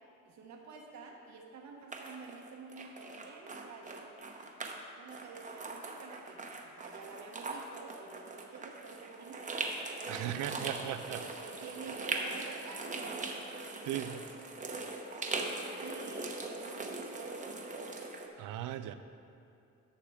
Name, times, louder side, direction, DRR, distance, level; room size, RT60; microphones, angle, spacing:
voice 1, 0.2-4.1 5.0-9.5 10.0-10.3 11.4-13.3 15.8-17.6, right 5 dB, 70° right, 1 dB, 1.1 m, -49 dB
sound 1, 1.9-4.8 5.1-18.3, right 3 dB, 25° right, 0.9 m, -41 dB
voice 2, 10.1-11.3 13.9-14.2 18.4-18.9, right 11 dB, 85° right, 11 dB, 0.5 m, -37 dB
11.5 x 6.6 x 3.5 m, 2.6 s
cardioid pair, 90°, 30 cm